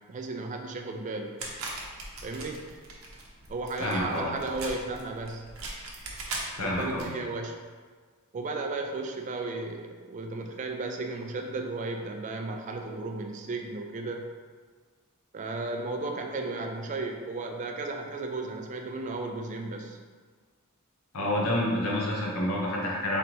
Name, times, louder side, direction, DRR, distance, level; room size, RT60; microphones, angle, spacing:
voice 1, 0.1-1.4 2.2-2.7 3.5-5.5 6.6-7.6 8.3-14.3 15.3-20.0, right 3 dB, 35° right, 3 dB, 0.3 m, -34 dB
sound 1, 1.4-7.1, right 2 dB, 65° right, 0.7 m, -40 dB
voice 2, 3.8-4.3 6.6-7.1 21.1-23.2, left 1 dB, 80° left, -3 dB, 0.9 m, -28 dB
3.9 x 3.3 x 3.0 m, 1.5 s
head